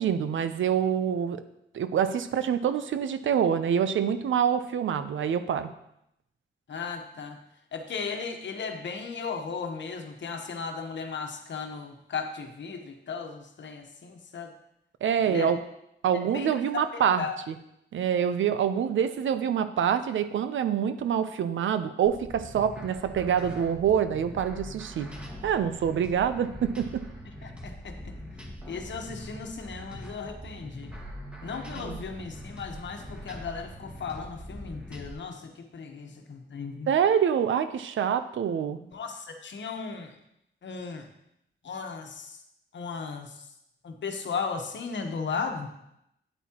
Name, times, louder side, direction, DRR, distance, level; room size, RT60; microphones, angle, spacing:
voice 1, 0.0-1.4 1.7-5.7 15.0-15.6 16.0-17.6 17.9-25.1 25.4-27.0 31.8-32.0 36.9-38.8, right 8 dB, 85° right, 11 dB, 0.6 m, -26 dB
voice 2, 6.7-7.4 7.7-14.5 15.2-15.5 16.3-17.4 27.4-28.1 28.7-30.9 31.4-36.9 38.8-40.1 40.6-41.1 41.6-42.4 42.7-43.3 43.8-45.7, left 5 dB, 70° left, 5 dB, 1.1 m, -36 dB
sound 1, 22.1-35.1, equal, 5° right, 2.0 m, -42 dB
9.1 x 8.3 x 3.0 m, 0.80 s
cardioid pair, 75°, 20 cm